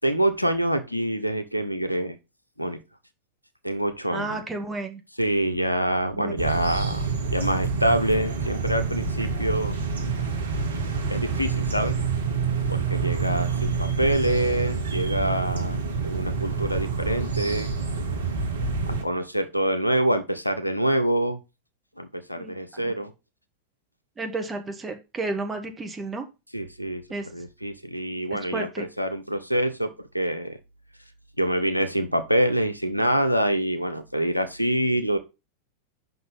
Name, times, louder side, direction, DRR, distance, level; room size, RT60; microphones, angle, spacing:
voice 1, 0.0-2.2 2.6-2.8 3.6-4.4 5.2-7.0 7.3-9.8 11.1-12.0 12.7-17.7 18.9-21.4 22.0-23.1 26.5-27.0 27.3-30.6 31.4-35.2, right 1 dB, 90° left, 9 dB, 0.7 m, -26 dB
voice 2, 4.1-5.0 6.1-6.4 22.4-22.9 24.2-26.2 27.1-27.3 28.5-28.9, right 2 dB, 15° right, 5 dB, 1.2 m, -32 dB
sound 1, 6.4-19.0, right 5 dB, 65° right, 1.1 m, -27 dB
5.6 x 3.9 x 5.5 m, 0.27 s
figure-of-eight pair, 90°, 0 cm